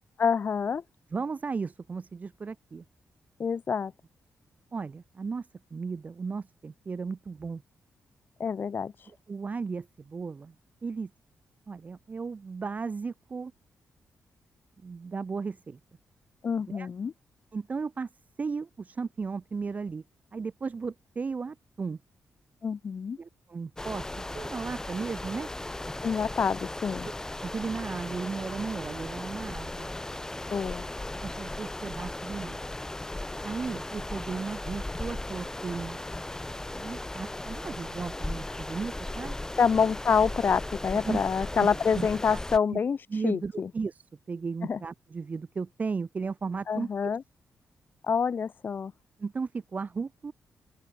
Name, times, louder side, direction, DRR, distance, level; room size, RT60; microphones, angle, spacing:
voice 1, 0.2-0.8 3.4-3.9 8.4-8.9 16.4-17.1 22.6-23.2 26.0-27.1 30.5-30.9 39.6-43.0 43.2-43.7 44.7-44.8 46.7-47.2 48.0-48.9, left 6 dB, 40° left, 0.8 m, -27 dB
voice 2, 1.1-2.8 4.7-7.6 9.1-10.5 10.8-11.1 11.7-13.5 14.8-15.8 16.7-16.9 17.5-18.1 18.4-20.0 20.3-22.0 23.2-25.5 27.0-27.1 27.4-29.9 31.2-32.6 33.4-36.0 36.7-39.4 41.0-41.2 41.5-41.7 41.9-42.4 42.7-42.8 43.1-47.1 49.2-50.3, right 5 dB, 30° right, 0.8 m, -35 dB
sound 1, 23.8-42.6, left 2 dB, 10° left, 1.5 m, -37 dB
open air
wide cardioid pair, 135°, 5 cm